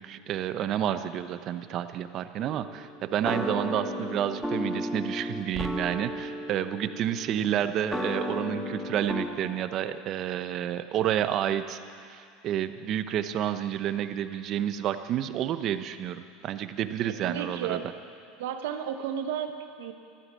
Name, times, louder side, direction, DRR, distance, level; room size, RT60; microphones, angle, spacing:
voice 1, 0.0-11.8 12.1-17.8, right 10 dB, 50° right, 11 dB, 0.8 m, -30 dB
sound 1, 2.4-9.3, left 1 dB, 5° left, 1.8 m, -34 dB
voice 2, 17.2-17.9 18.4-19.9, right 8 dB, 80° right, 6 dB, 1.0 m, -33 dB
13.0 x 13.0 x 7.6 m, 2.3 s
supercardioid pair, 100°, 0 cm